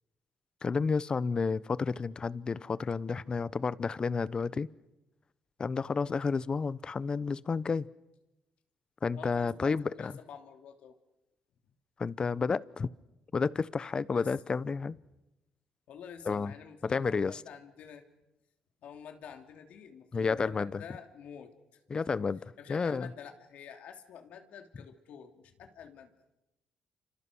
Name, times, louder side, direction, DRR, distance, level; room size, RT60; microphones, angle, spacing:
voice 1, 0.6-4.7 5.6-7.9 9.0-10.1 12.0-12.9 13.3-15.0 16.3-16.5 16.8-17.4 20.1-20.8 21.9-22.4 22.7-23.1, left 5 dB, 40° left, 18 dB, 1.0 m, -31 dB
voice 2, 9.1-11.0 14.1-14.5 15.9-18.0 18.8-21.5 22.6-26.1, left 7 dB, 75° left, 5 dB, 3.1 m, -48 dB
28.5 x 26.0 x 6.4 m, 0.97 s
supercardioid pair, 65°, 2 cm